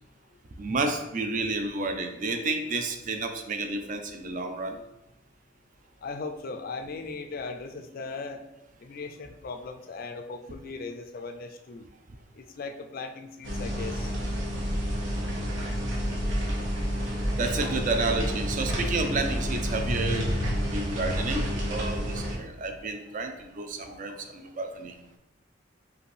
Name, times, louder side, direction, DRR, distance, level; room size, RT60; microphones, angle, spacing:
voice 1, 0.6-4.8 17.4-24.9, right 3 dB, 45° right, 6 dB, 0.4 m, -31 dB
voice 2, 6.0-8.4 8.8-11.9 12.3-14.1, left 4 dB, 50° left, 6 dB, 0.4 m, -38 dB
sound 1, 13.4-22.3, equal, 80° right, 1.1 m, -29 dB
5.1 x 2.6 x 3.2 m, 0.89 s
head